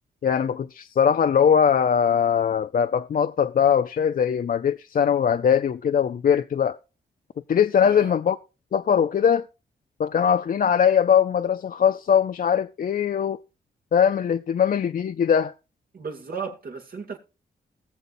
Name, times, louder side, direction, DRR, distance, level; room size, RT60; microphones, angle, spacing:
voice 1, 0.2-6.8 7.5-8.4 8.7-9.4 10.0-13.4 13.9-15.5, left 8 dB, 55° left, 0.5 m, -21 dB
voice 2, 7.8-8.2 15.9-17.2, right 5 dB, 60° right, 2.2 m, -35 dB
19.5 x 6.9 x 2.6 m
cardioid pair, 80°, 17 cm